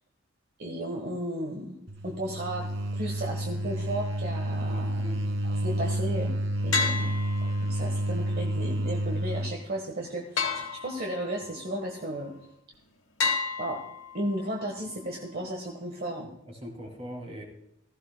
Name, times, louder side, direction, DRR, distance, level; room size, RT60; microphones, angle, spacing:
voice 1, 0.6-2.7 2.9-5.0 5.5-6.4 6.6-7.1 7.7-12.3 13.6-13.8 14.1-16.3, right 1 dB, 50° right, 2 dB, 1.3 m, -34 dB
sound 1, 1.9-9.6, right 1 dB, 75° right, 1.6 m, -30 dB
voice 2, 4.6-5.3 16.5-17.4, equal, 30° right, 2 dB, 2.7 m, -41 dB
sound 2, 6.7-8.0 10.4-11.4 13.2-14.4, left 4 dB, 70° left, 1.2 m, -30 dB
15.5 x 14.0 x 2.2 m, 0.78 s
head